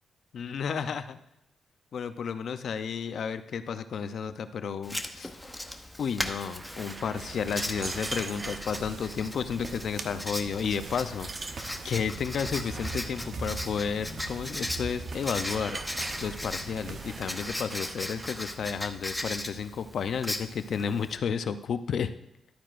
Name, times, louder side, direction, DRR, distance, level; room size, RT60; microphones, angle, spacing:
voice 1, 0.3-1.2 1.9-5.3 6.0-22.1, left 6 dB, 65° left, 10 dB, 0.6 m, -32 dB
Writing, 4.8-21.2, left 1 dB, 5° left, 0.8 m, -38 dB
sound 1, 6.2-8.7 9.5-9.8 10.2-10.3 10.7-12.0 12.6-13.3 14.0-18.6, right 2 dB, 25° right, 0.5 m, -42 dB
sound 2, 7.1-17.6, right 3 dB, 50° right, 0.9 m, -41 dB
12.0 x 8.9 x 2.5 m, 0.84 s
cardioid pair, 110°, 0 cm